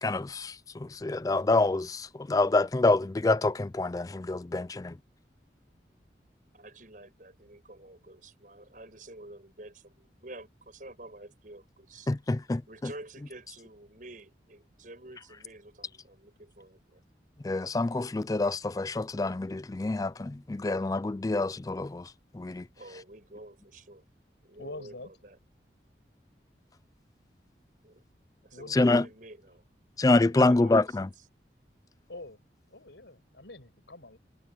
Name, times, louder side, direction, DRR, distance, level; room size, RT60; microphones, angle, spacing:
voice 1, 0.0-5.0 12.1-12.6 17.4-22.6 28.7-29.0 30.0-31.1, left 2 dB, 20° left, 0.3 m, -26 dB
voice 2, 6.5-12.1 12.7-17.0 22.8-24.0 24.4-25.4 27.8-28.0 28.4-29.6 30.1-31.0, right 2 dB, 50° right, 7.4 m, -49 dB
voice 3, 24.6-25.1 28.5-28.8 32.1-32.4 32.7-34.2, left 2 dB, 90° left, 6.2 m, -45 dB
head